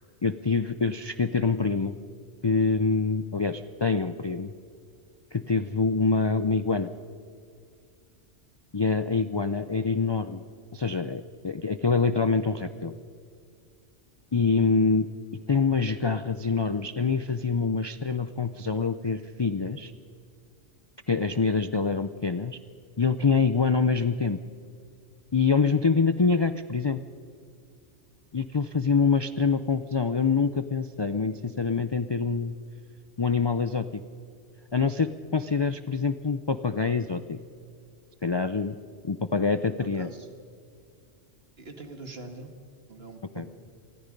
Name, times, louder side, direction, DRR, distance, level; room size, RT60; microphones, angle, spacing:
voice 1, 0.2-1.9 2.4-4.5 5.3-6.9 8.7-10.4 10.7-12.9 14.3-15.1 15.5-19.9 21.1-22.6 23.0-24.4 25.3-27.0 28.3-32.5 33.2-34.0 34.7-37.4 38.2-38.8 39.0-40.1 43.4-43.5, left 4 dB, 40° left, 11 dB, 0.4 m, -25 dB
voice 2, 39.6-40.3 41.6-42.5 42.9-43.5, right 2 dB, 55° right, 6 dB, 2.1 m, -43 dB
26.5 x 20.5 x 5.3 m, 2.3 s
omnidirectional pair, 1.2 m